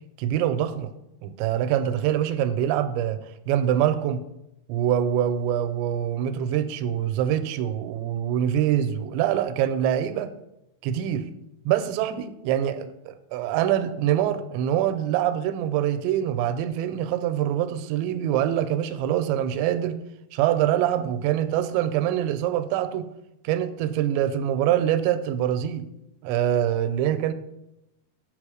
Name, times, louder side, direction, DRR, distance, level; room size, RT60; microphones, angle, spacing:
voice 1, 0.2-0.9 1.2-3.2 3.5-4.2 4.7-10.3 10.8-11.3 11.7-20.0 20.3-23.1 23.4-25.9 26.2-27.3, right 10 dB, 90° right, 11 dB, 2.8 m, -24 dB
8.1 x 5.2 x 4.9 m, 0.87 s
omnidirectional pair, 5.0 m